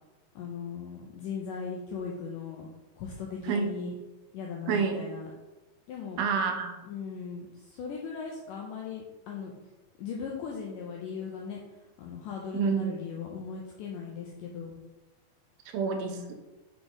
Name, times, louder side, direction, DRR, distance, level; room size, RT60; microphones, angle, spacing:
voice 1, 0.4-2.7 3.0-4.0 4.3-5.3 5.9-6.3 6.9-9.5 10.0-14.7 16.0-16.3, left 6 dB, 80° left, -1 dB, 1.9 m, -38 dB
voice 2, 4.7-5.0 6.2-6.7 12.5-12.9 15.7-16.3, right 6 dB, 80° right, 5 dB, 2.4 m, -28 dB
6.9 x 4.8 x 4.0 m, 1.1 s
omnidirectional pair, 4.6 m